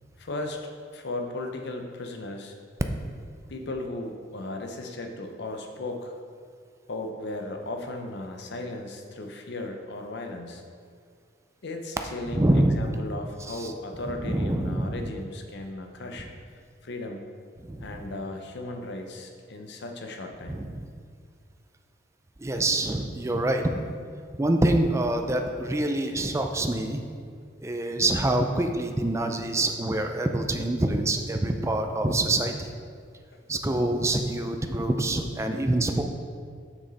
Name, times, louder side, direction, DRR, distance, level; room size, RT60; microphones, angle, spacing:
voice 1, 0.2-2.6 3.5-6.1 6.9-10.6 11.6-16.3 16.8-17.3 17.8-20.6 33.3-33.4, left 2 dB, 60° left, 4 dB, 0.7 m, -36 dB
voice 2, 12.3-13.0 13.5-13.7 14.1-15.0 17.6-17.9 20.5-20.8 22.4-23.8 24.3-27.0 27.6-32.7 33.5-36.0, right 1 dB, 15° right, 5 dB, 0.4 m, -26 dB
6.3 x 6.2 x 4.0 m, 2.1 s
head